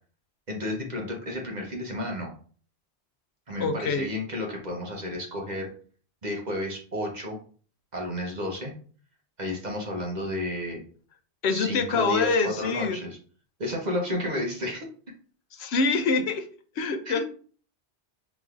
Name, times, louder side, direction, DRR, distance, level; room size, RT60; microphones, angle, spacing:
voice 1, 0.5-2.3 3.5-5.7 6.2-7.4 7.9-8.7 9.4-10.8 11.5-13.2 13.6-14.9 17.1-17.2, left 1 dB, 40° right, 0 dB, 1.0 m, -32 dB
voice 2, 3.6-4.1 11.4-13.0 15.5-16.5 16.8-17.2, left 4 dB, 70° left, 7 dB, 0.9 m, -25 dB
5.0 x 3.1 x 2.5 m, 0.43 s
omnidirectional pair, 1.2 m